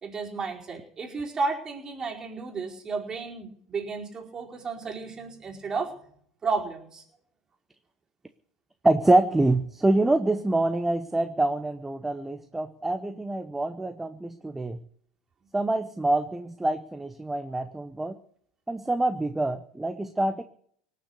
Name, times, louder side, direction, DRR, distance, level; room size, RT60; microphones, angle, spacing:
voice 1, 0.0-5.9 6.4-7.0, right 4 dB, 25° right, -1 dB, 4.6 m, -32 dB
voice 2, 8.8-14.8 15.5-18.2 18.7-20.4, right 2 dB, 10° right, 9 dB, 1.0 m, -25 dB
18.5 x 6.8 x 9.7 m, 0.63 s
hypercardioid pair, 90°, 2 cm